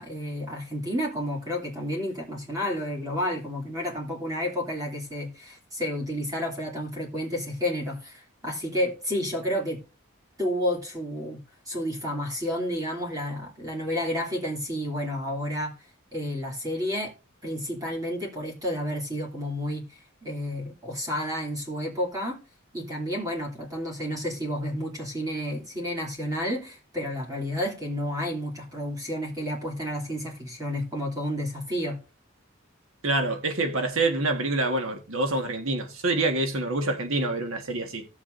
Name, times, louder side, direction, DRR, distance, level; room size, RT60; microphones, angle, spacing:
voice 1, 0.0-9.8 10.4-11.4 11.7-15.7 16.1-17.1 17.4-22.4 22.7-32.0, equal, 20° right, 2.6 m, -31 dB
voice 2, 33.0-38.1, right 2 dB, 85° right, 1.6 m, -26 dB
16.5 x 7.2 x 2.6 m
head